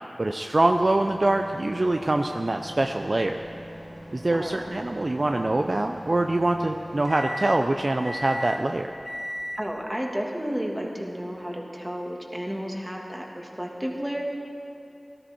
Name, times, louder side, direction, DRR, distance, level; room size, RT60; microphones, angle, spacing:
voice 1, 0.2-3.4 4.1-8.9, right 2 dB, 45° right, 5 dB, 0.5 m, -24 dB
sound 1, 0.6-9.8, equal, 10° left, 2.6 m, -39 dB
voice 2, 4.3-4.6 9.6-14.2, equal, 15° right, -1 dB, 2.1 m, -32 dB
17.5 x 13.0 x 4.4 m, 2.7 s
wide cardioid pair, 65°, 0 cm